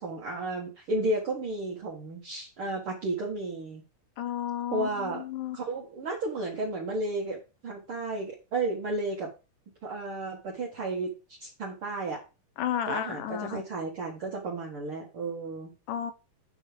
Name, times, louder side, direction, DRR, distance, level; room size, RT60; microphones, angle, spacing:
voice 1, 0.0-3.8 4.7-5.2 5.5-9.3 9.8-12.2 12.9-15.7, right 2 dB, 45° right, -3 dB, 2.3 m, -33 dB
voice 2, 4.2-5.6 12.6-13.6 15.9-16.1, left 10 dB, 80° left, 11 dB, 2.4 m, -32 dB
9.0 x 6.1 x 5.1 m, 0.30 s
omnidirectional pair, 3.8 m